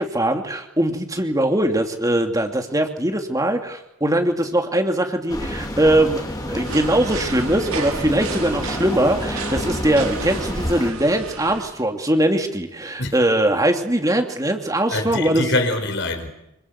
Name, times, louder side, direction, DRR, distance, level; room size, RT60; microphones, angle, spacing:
voice 1, 0.0-6.2 6.5-15.4, right 1 dB, 15° right, 2.7 m, -21 dB
sound 1, 5.3-10.9, left 1 dB, 15° left, 4.1 m, -29 dB
sound 2, 6.6-11.7, right 4 dB, 80° right, 6.1 m, -32 dB
voice 2, 14.9-16.3, left 2 dB, 55° left, 5.0 m, -24 dB
27.5 x 26.0 x 8.2 m
head